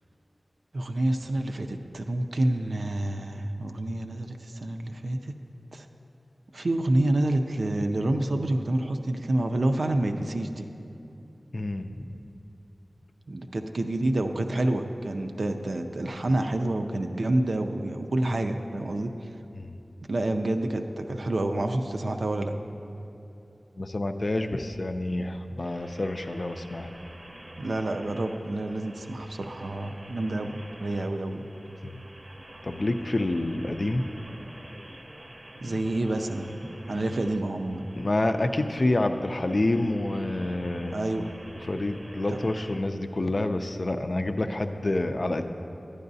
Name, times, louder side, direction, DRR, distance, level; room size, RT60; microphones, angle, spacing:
voice 1, 0.7-5.3 5.7-5.9 6.5-10.7 13.3-19.3 20.1-22.5 27.6-31.4 35.6-36.5 36.9-37.8 40.9-41.3 42.3-42.4, right 1 dB, 80° right, 5 dB, 0.4 m, -28 dB
voice 2, 11.5-12.1 19.5-19.7 23.8-26.9 31.8-32.0 32.6-34.0 37.9-41.0 41.6-45.4, left 2 dB, 55° left, 7 dB, 0.4 m, -28 dB
sound 1, 25.6-42.8, right 1 dB, 35° right, 0.7 m, -47 dB
11.0 x 9.5 x 2.7 m, 2.8 s
wide cardioid pair, 55°, 0 cm